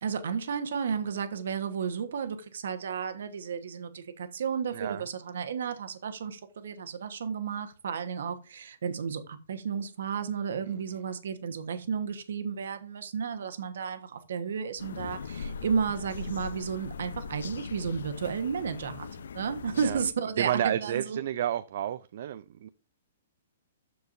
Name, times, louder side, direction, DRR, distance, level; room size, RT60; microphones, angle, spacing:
voice 1, 0.0-21.2, right 6 dB, 70° right, 1.2 m, -33 dB
sound 1, 14.8-20.1, left 5 dB, 80° left, 0.6 m, -40 dB
voice 2, 20.4-22.7, right 11 dB, 50° right, 0.4 m, -31 dB
13.5 x 4.6 x 2.6 m
hypercardioid pair, 165°, 0 cm